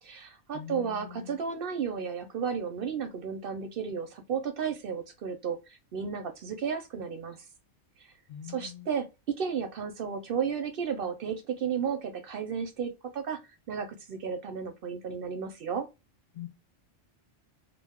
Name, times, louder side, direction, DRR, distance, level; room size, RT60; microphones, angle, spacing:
voice 1, 0.0-7.4 8.0-8.1 8.4-15.9, right 6 dB, 60° right, 0.7 m, -33 dB
voice 2, 0.5-1.4 8.3-8.9 16.3-16.5, left 11 dB, 60° left, 0.5 m, -43 dB
2.4 x 2.2 x 3.4 m
omnidirectional pair, 1.2 m